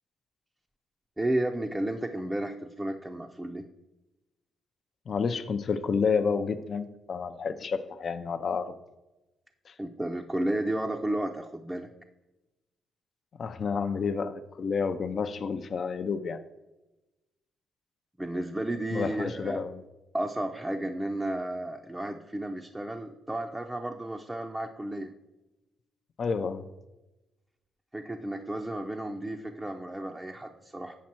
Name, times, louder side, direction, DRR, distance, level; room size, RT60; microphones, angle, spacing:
voice 1, 1.2-3.6 9.8-11.9 18.2-19.6 20.1-25.1 27.9-31.0, right 1 dB, 10° right, 2 dB, 0.5 m, -32 dB
voice 2, 5.1-8.7 13.4-16.4 18.9-19.8 26.2-26.6, left 5 dB, 50° left, 9 dB, 0.5 m, -30 dB
7.3 x 5.3 x 4.3 m, 1.0 s
cardioid pair, 90°, 0 cm